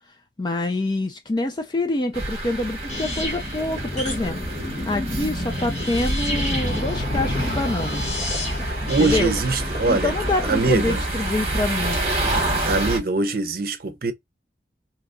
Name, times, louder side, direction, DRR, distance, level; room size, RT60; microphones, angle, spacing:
voice 1, 0.4-8.0 8.8-9.3 9.9-12.3, left 2 dB, 25° left, 0.4 m, -26 dB
sound 1, 2.1-13.0, right 1 dB, 35° right, 1.1 m, -28 dB
sound 2, 2.9-10.7, left 1 dB, 40° left, 1.2 m, -30 dB
voice 2, 8.6-10.1 10.5-11.0 12.7-14.1, right 3 dB, 55° right, 0.6 m, -23 dB
2.8 x 2.3 x 3.7 m
head